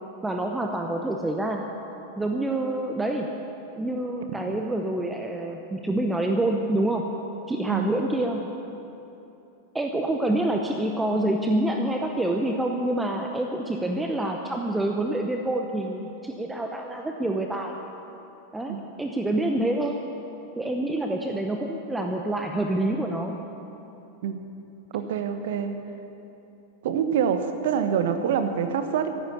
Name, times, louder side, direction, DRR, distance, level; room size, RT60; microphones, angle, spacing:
voice 1, 0.2-1.7 2.2-3.4 3.8-7.0 7.5-8.5 9.7-17.8 18.5-20.1 20.5-23.4, right 1 dB, 10° right, 3 dB, 0.9 m, -27 dB
voice 2, 24.9-25.8 26.8-29.1, right 7 dB, 55° right, 8 dB, 1.1 m, -25 dB
14.5 x 11.5 x 7.1 m, 2.9 s
figure-of-eight pair, 90°, 0 cm